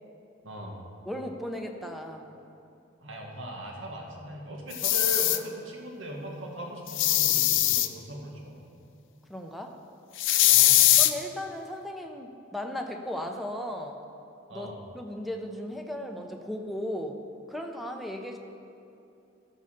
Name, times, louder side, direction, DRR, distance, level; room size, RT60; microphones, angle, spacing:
voice 1, 0.4-0.8 3.0-8.6 10.5-11.0 14.5-14.8, right 1 dB, 85° right, 0 dB, 1.8 m, -39 dB
voice 2, 1.1-2.4 9.3-9.8 11.0-14.0 14.5-17.2 17.5-18.4, left 1 dB, ahead, 3 dB, 0.7 m, -36 dB
sound 1, 4.7-5.4 6.9-7.9 10.2-11.1, left 14 dB, 75° left, 0.5 m, -21 dB
13.0 x 5.6 x 6.6 m, 2.7 s
head